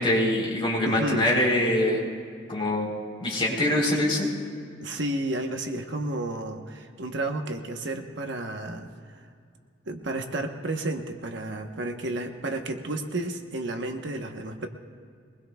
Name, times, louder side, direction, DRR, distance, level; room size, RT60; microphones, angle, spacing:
voice 1, 0.0-2.0 2.5-2.9 3.2-4.3, left 1 dB, 30° left, -3 dB, 3.6 m, -24 dB
voice 2, 0.8-1.3 4.8-9.2 9.9-14.7, right 2 dB, 65° right, 5 dB, 1.0 m, -32 dB
23.0 x 20.0 x 2.3 m, 2.2 s
head